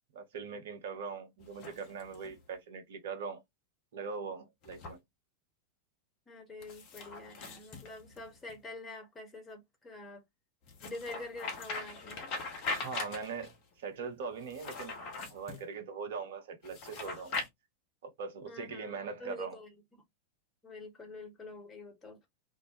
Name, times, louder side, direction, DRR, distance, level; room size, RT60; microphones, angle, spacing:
voice 1, 0.1-3.4 3.9-5.0 12.7-14.9 15.2-17.4 18.0-19.6, right 5 dB, 55° right, 0.6 m, -41 dB
sound 1, 1.4-2.4 4.6-5.0 6.6-8.6 10.7-13.6 14.4-15.6 16.6-17.5, left 3 dB, 40° left, 0.7 m, -41 dB
voice 2, 6.3-10.2 10.8-12.4 18.4-20.0 20.6-22.2, left 2 dB, 15° left, 1.0 m, -46 dB
2.2 x 2.0 x 2.7 m
figure-of-eight pair, 90°, 0 cm